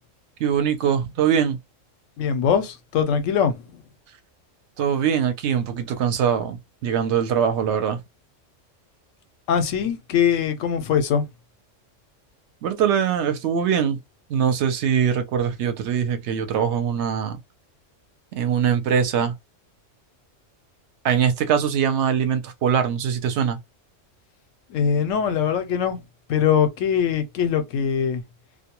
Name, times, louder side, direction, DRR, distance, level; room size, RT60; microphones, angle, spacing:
voice 1, 0.4-1.6 4.8-8.0 12.6-14.0 14.3-17.4 18.3-19.3 21.0-23.6, right 8 dB, 65° right, 0.8 m, -22 dB
voice 2, 2.2-3.6 9.5-11.2 24.7-26.0 26.3-28.2, left 7 dB, 85° left, 1.0 m, -22 dB
2.3 x 2.2 x 2.9 m
omnidirectional pair, 1.3 m